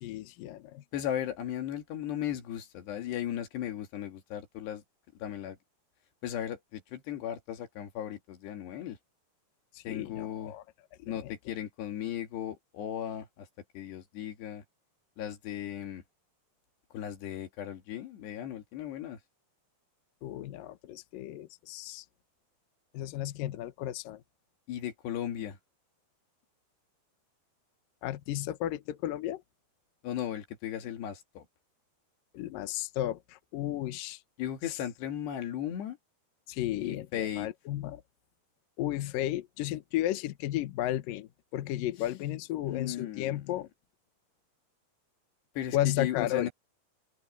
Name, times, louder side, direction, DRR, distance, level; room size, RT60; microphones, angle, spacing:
voice 1, 0.0-0.8 9.7-10.6 11.0-11.3 20.2-22.0 22.9-24.2 28.0-29.4 32.3-34.2 36.5-38.0 38.8-43.7 45.7-46.5, left 13 dB, 65° left, 2.5 m, -33 dB
voice 2, 0.9-4.8 5.2-5.6 6.2-9.0 9.8-10.5 11.1-13.5 13.7-14.6 15.2-16.0 16.9-19.2 24.7-25.6 30.0-31.5 34.4-36.0 36.8-37.5 42.7-43.4 45.6-46.5, left 10 dB, 90° left, 4.4 m, -36 dB
open air
omnidirectional pair, 4.7 m